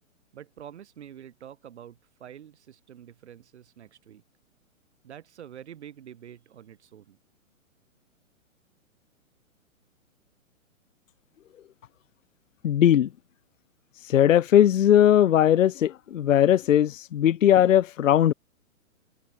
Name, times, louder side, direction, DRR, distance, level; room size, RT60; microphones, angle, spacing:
voice 1, 0.3-4.2 5.0-7.2, right 10 dB, 50° right, 6.1 m, -46 dB
voice 2, 12.6-13.1 14.1-18.3, left 11 dB, 70° left, 0.5 m, -19 dB
figure-of-eight pair, 120°, 41 cm